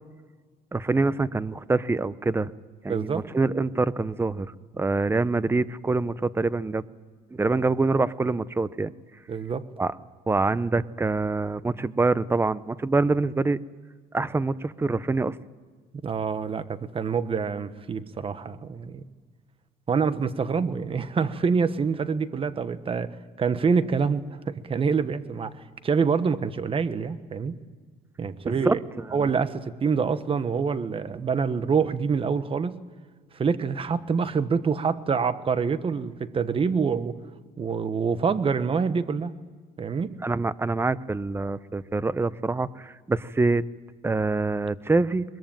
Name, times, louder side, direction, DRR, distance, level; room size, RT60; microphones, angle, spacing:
voice 1, 0.7-2.5 2.8-6.8 7.3-8.9 9.8-10.0 10.3-13.6 14.1-15.4 28.4-28.8 29.2-29.3 40.2-43.6 44.0-45.2, right 3 dB, 15° right, 16 dB, 0.7 m, -25 dB
voice 2, 2.9-3.2 9.3-9.6 16.0-19.0 19.9-25.5 25.8-27.6 28.2-28.8 29.1-32.8 33.3-37.2 37.6-39.3 39.8-40.2, right 5 dB, 35° right, 12 dB, 1.3 m, -26 dB
22.0 x 22.0 x 9.1 m, 1.5 s
cardioid pair, 110°, 17 cm